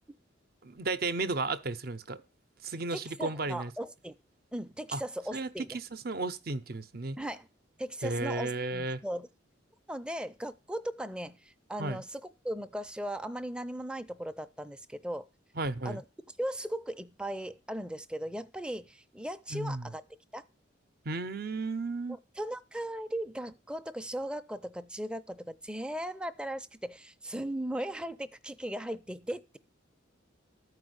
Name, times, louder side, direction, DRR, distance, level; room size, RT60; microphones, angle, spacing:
voice 1, 0.6-2.2 2.6-3.7 4.9-5.0 5.3-7.2 8.0-9.0 11.8-12.0 15.6-16.0 19.5-19.9 21.0-22.2, right 3 dB, 50° right, 0.7 m, -34 dB
voice 2, 2.9-4.1 4.5-5.8 7.2-7.5 7.8-9.3 9.9-15.3 15.8-16.0 16.4-20.0 20.3-20.4 22.4-29.6, right 1 dB, 5° right, 0.5 m, -37 dB
13.5 x 4.8 x 7.9 m
head